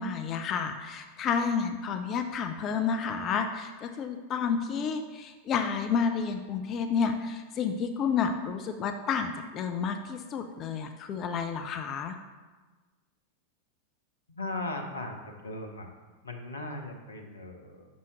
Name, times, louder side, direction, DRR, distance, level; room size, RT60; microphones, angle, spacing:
voice 1, 0.0-12.2, left 6 dB, 30° left, 6 dB, 0.4 m, -30 dB
voice 2, 14.3-15.9 16.2-17.9, left 2 dB, 75° left, 3 dB, 0.7 m, -38 dB
6.2 x 5.5 x 3.1 m, 1.3 s
figure-of-eight pair, 90°, 0 cm